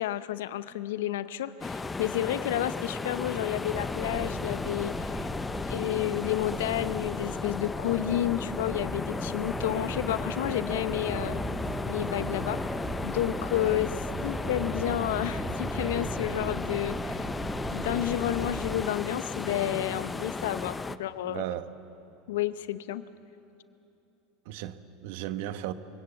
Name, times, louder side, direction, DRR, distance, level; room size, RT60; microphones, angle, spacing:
voice 1, 0.0-5.3 5.7-11.4 11.9-12.6 13.0-17.2 17.7-21.4 22.3-23.0, left 13 dB, 75° left, 0.8 m, -31 dB
sound 1, 1.6-21.0, left 3 dB, 15° left, 0.7 m, -35 dB
sound 2, 3.7-18.8, right 2 dB, 15° right, 1.6 m, -38 dB
voice 2, 21.2-21.7 24.4-25.7, right 13 dB, 65° right, 1.1 m, -35 dB
23.5 x 17.5 x 8.1 m
hypercardioid pair, 90°, 0 cm